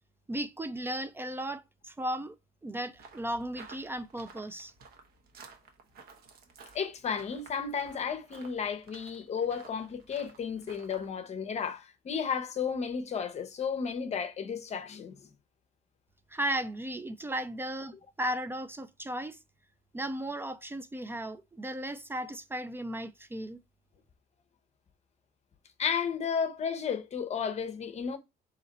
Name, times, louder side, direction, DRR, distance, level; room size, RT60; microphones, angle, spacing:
voice 1, 0.3-2.4 2.6-4.7 16.3-19.4 19.9-23.6, right 1 dB, 15° right, 0.3 m, -35 dB
sound 1, 2.9-11.1, right 4 dB, 65° right, 1.1 m, -54 dB
voice 2, 6.7-15.2 25.8-28.2, left 6 dB, 40° left, 0.7 m, -33 dB
4.0 x 3.0 x 3.9 m
cardioid pair, 110°, 17 cm